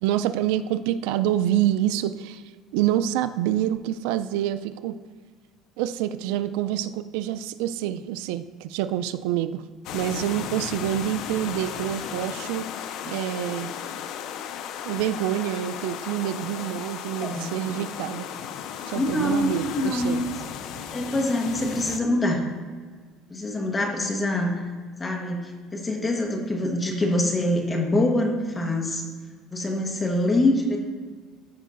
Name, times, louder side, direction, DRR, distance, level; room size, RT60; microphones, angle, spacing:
voice 1, 0.0-2.4 2.7-5.0 5.8-9.6 9.9-12.7 13.1-13.7 14.8-18.3 18.9-20.2, right 12 dB, 85° right, 12 dB, 0.3 m, -27 dB
sound 1, 9.8-22.0, left 8 dB, 60° left, 0.5 m, -35 dB
voice 2, 18.9-20.2 20.9-22.4 23.3-24.6 25.0-29.0 29.5-30.8, left 1 dB, 20° left, 2 dB, 1.2 m, -25 dB
14.0 x 5.5 x 2.5 m, 1.5 s
cardioid pair, 145°, 0 cm